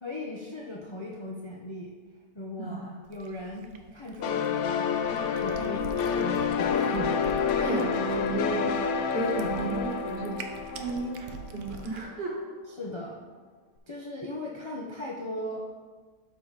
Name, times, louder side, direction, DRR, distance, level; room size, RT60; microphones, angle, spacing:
voice 1, 0.0-1.9 2.3-4.9 5.4-5.9 6.1-7.2 12.8-13.2 13.9-15.6, left 1 dB, 45° left, -3 dB, 0.3 m, -38 dB
voice 2, 2.6-2.9 7.6-8.8 9.1-12.4, right 3 dB, 35° right, -3 dB, 1.7 m, -33 dB
Cat, 3.0-12.0, right 5 dB, 80° right, 1.3 m, -45 dB
sound 1, 4.2-11.7, left 6 dB, 75° left, 0.7 m, -28 dB
11.5 x 3.9 x 4.0 m, 1.5 s
omnidirectional pair, 1.8 m